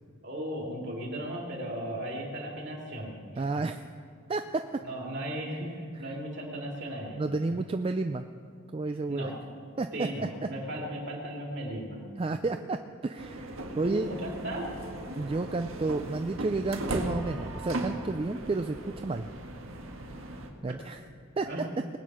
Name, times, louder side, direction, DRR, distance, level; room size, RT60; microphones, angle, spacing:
voice 1, 0.2-3.4 4.8-7.2 9.1-9.3 9.9-12.0 13.7-14.7 21.4-21.6, right 1 dB, 55° right, 0 dB, 2.8 m, -36 dB
voice 2, 3.4-3.8 4.3-4.8 6.1-6.2 7.2-8.2 8.7-9.3 9.8-10.1 10.4-10.5 12.2-13.5 13.8-14.1 15.2-19.3 20.6-21.0 21.4-21.7, right 3 dB, 25° right, 7 dB, 0.3 m, -31 dB
sound 1, 13.2-20.5, right 1 dB, 75° right, 1.5 m, -37 dB
20.0 x 8.5 x 6.1 m, 2.3 s
head